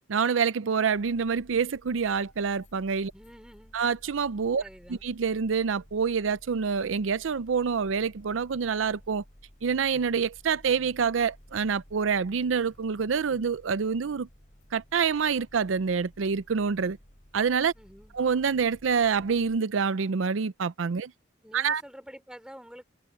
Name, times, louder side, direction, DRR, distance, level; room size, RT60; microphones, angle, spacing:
voice 1, 0.1-3.1 3.7-4.6 4.9-9.2 9.6-14.3 14.7-17.0 17.3-17.7 18.1-21.1 21.5-21.8, right 6 dB, 90° right, 0.5 m, -27 dB
sound 1, 0.9-19.6, equal, 40° left, 6.3 m, -55 dB
voice 2, 3.1-3.8 4.6-5.0 17.8-18.2 21.4-22.8, equal, 5° right, 3.6 m, -48 dB
head